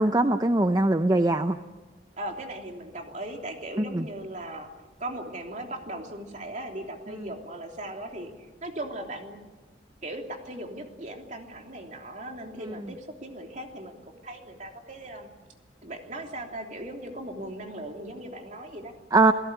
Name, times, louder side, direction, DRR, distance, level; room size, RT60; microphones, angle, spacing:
voice 1, 0.0-1.6 3.9-4.0 19.1-19.3, right 2 dB, 20° right, 8 dB, 0.7 m, -21 dB
voice 2, 2.1-4.7 5.0-9.4 10.0-15.3 15.8-18.9, right 1 dB, 45° right, 2 dB, 3.2 m, -38 dB
28.5 x 17.0 x 8.2 m, 1.2 s
head